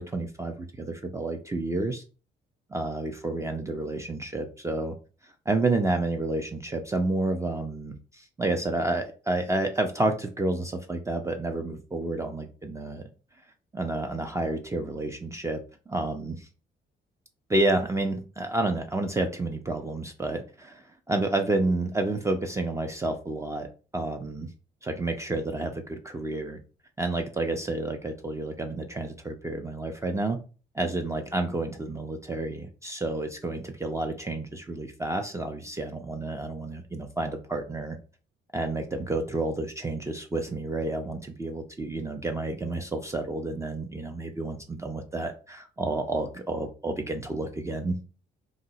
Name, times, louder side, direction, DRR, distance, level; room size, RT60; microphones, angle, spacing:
voice 1, 0.0-2.0 2.7-5.0 5.2-13.0 13.7-16.5 17.5-23.7 23.9-24.5 24.8-26.6 27.0-30.4 30.7-38.0 38.5-47.9, right 2 dB, 15° right, 3 dB, 0.4 m, -30 dB
2.8 x 2.0 x 3.8 m, 0.36 s
cardioid pair, 90°, 20 cm